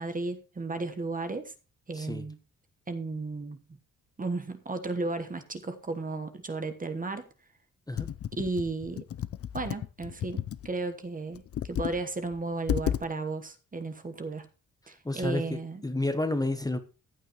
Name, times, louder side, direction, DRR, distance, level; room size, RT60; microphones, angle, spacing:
voice 1, 0.0-1.5 1.9-2.4 2.9-3.6 4.2-7.3 8.3-9.0 9.5-14.5 14.9-15.8, right 3 dB, 25° right, 8 dB, 1.2 m, -34 dB
Computer keyboard, 8.0-10.7 11.3-12.0 12.3-12.4 12.7-13.0, left 10 dB, 45° left, 0.5 m, -32 dB
voice 2, 15.0-16.8, left 2 dB, 10° left, 8 dB, 1.1 m, -30 dB
15.0 x 8.9 x 3.0 m, 0.33 s
cardioid pair, 105°, 31 cm